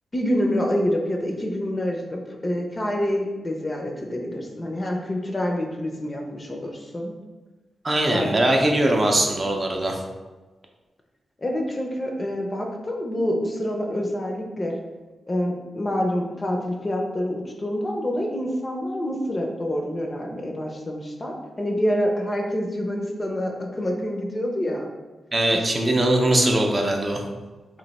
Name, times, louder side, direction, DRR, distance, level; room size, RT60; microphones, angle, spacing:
voice 1, 0.1-7.1 8.1-8.3 11.4-14.8 15.3-24.9 25.6-25.7, equal, 25° left, 1 dB, 0.5 m, -27 dB
voice 2, 7.8-10.0 25.3-27.2, right 1 dB, 30° right, 1 dB, 0.5 m, -21 dB
3.1 x 2.6 x 4.0 m, 1.2 s
wide cardioid pair, 100°, 0 cm